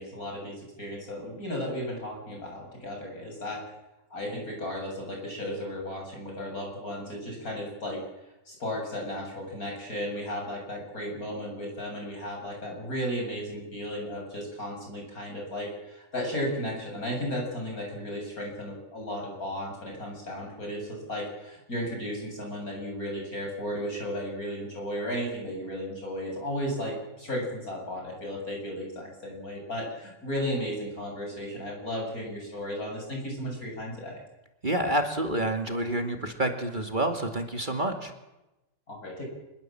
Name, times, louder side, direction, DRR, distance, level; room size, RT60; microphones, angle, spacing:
voice 1, 0.0-3.6 4.1-8.0 8.5-34.2 38.9-39.2, equal, 50° left, 0 dB, 8.2 m, -34 dB
voice 2, 34.6-38.1, right 1 dB, 25° right, 5 dB, 2.3 m, -28 dB
26.5 x 20.5 x 7.7 m, 0.98 s
omnidirectional pair, 2.0 m